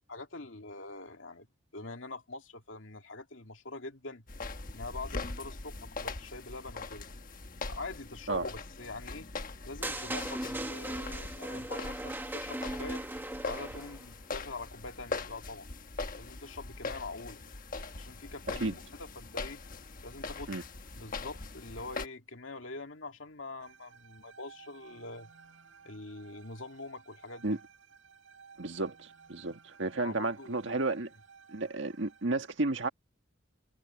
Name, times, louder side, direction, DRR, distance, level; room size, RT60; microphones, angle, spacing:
voice 1, 0.1-1.5 1.7-4.2 4.7-7.1 7.7-9.3 9.6-13.0 13.4-15.7 16.2-17.4 18.0-19.6 20.0-20.6 20.9-25.3 25.8-27.6 30.0-30.7, left 3 dB, 75° left, 2.5 m, -44 dB
sound 1, 4.3-22.1, left 3 dB, 45° left, 1.3 m, -42 dB
sound 2, 9.8-14.1, right 1 dB, 10° right, 1.1 m, -38 dB
sound 3, 23.6-32.2, right 6 dB, 90° right, 3.6 m, -57 dB
voice 2, 28.6-31.1 31.5-32.9, right 2 dB, 65° right, 1.7 m, -32 dB
head